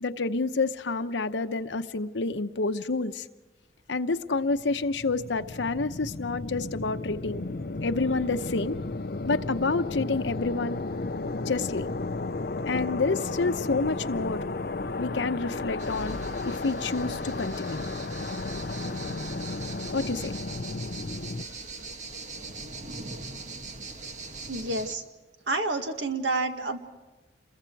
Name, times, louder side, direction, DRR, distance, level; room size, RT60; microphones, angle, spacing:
voice 1, 0.0-3.3 3.9-7.4 7.8-8.8 9.3-10.8 11.5-11.9 12.6-14.4 15.0-16.2 16.4-17.9 19.9-20.4 20.7-20.8, left 3 dB, 90° left, 9 dB, 0.9 m, -28 dB
sound 1, 4.3-21.4, left 3 dB, 55° left, 0.7 m, -34 dB
sound 2, 15.8-25.0, right 3 dB, 40° right, 1.4 m, -41 dB
voice 2, 24.5-25.0 25.5-26.8, right 2 dB, 80° right, 5 dB, 1.9 m, -29 dB
28.5 x 22.0 x 4.7 m, 1.2 s
head